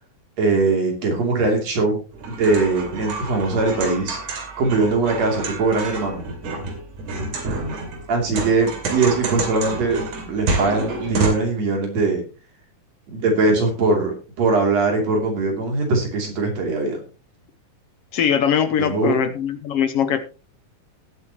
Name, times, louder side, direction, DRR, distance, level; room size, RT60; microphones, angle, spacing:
voice 1, 0.4-2.0 2.3-4.2 4.6-6.2 8.1-12.2 13.1-17.0 18.8-19.2, right 3 dB, 60° right, 2 dB, 4.1 m, -21 dB
sound 1, 2.1-11.3, right 3 dB, 80° right, 4.0 m, -29 dB
voice 2, 18.1-20.2, left 8 dB, 70° left, 10 dB, 1.5 m, -21 dB
18.5 x 8.2 x 3.0 m, 0.33 s
omnidirectional pair, 3.5 m